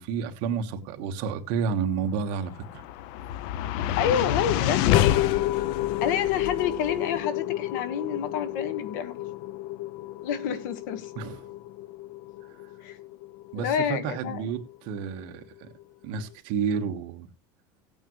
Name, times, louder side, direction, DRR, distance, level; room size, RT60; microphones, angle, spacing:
voice 1, 0.0-2.8 11.2-11.4 13.5-15.7 16.0-17.3, right 6 dB, 50° right, 1.3 m, -30 dB
sound 1, 2.3-14.7, left 13 dB, 55° left, 0.5 m, -29 dB
voice 2, 3.8-4.9 6.0-9.2 10.2-11.1 12.8-13.0 13.5-14.4, left 8 dB, 70° left, 1.5 m, -28 dB
17.0 x 8.8 x 3.1 m
cardioid pair, 170°, 10 cm